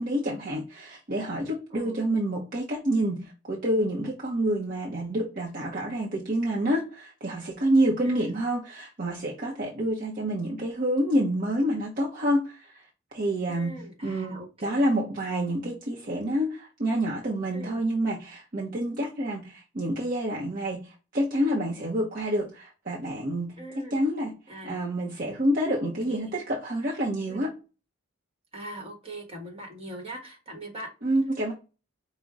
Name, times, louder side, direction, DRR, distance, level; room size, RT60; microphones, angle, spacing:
voice 1, 0.0-12.7 13.1-14.3 14.6-23.6 23.9-24.3 24.6-27.5 31.0-31.5, right 1 dB, 45° right, 0.8 m, -28 dB
voice 2, 8.0-8.4 13.5-14.8 17.5-17.8 23.6-24.0 24.5-24.8 25.7-26.3 27.3-27.5 28.5-30.9, right 1 dB, 30° right, 1.3 m, -41 dB
5.2 x 2.1 x 3.5 m
head